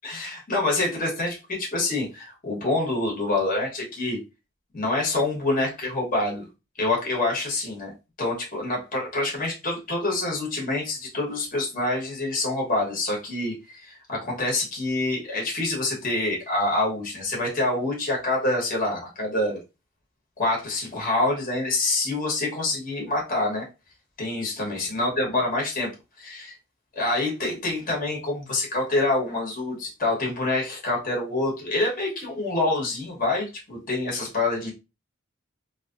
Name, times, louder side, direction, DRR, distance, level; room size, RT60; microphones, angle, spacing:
voice 1, 0.0-4.2 4.7-6.5 6.8-19.6 20.4-23.7 24.2-25.9 26.2-26.5 26.9-34.7, left 2 dB, 45° left, -2 dB, 1.3 m, -26 dB
3.0 x 2.8 x 2.5 m, 0.27 s
head